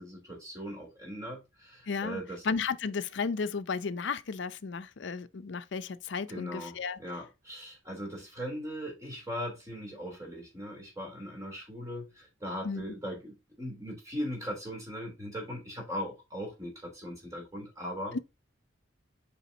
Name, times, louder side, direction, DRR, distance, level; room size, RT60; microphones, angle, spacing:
voice 1, 0.0-2.4 6.3-18.2, equal, 15° right, 3.3 m, -39 dB
voice 2, 1.9-7.0 12.6-12.8 18.1-18.2, left 5 dB, 65° left, 0.5 m, -34 dB
7.0 x 5.0 x 2.8 m
head